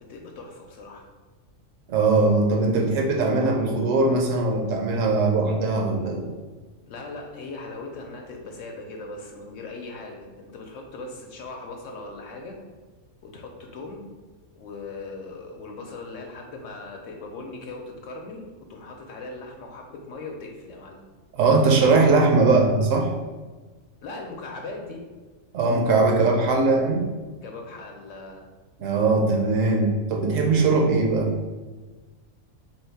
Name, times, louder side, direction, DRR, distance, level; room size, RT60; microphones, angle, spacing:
voice 1, 0.1-1.0 6.8-12.6 13.2-14.0 14.6-21.0 24.0-25.0 27.4-28.5, left 3 dB, 75° left, 1 dB, 1.0 m, -39 dB
voice 2, 1.9-6.3 21.3-23.1 25.5-27.1 28.8-31.3, right 3 dB, 80° right, 2 dB, 1.1 m, -20 dB
3.6 x 2.7 x 4.5 m, 1.3 s
omnidirectional pair, 1.3 m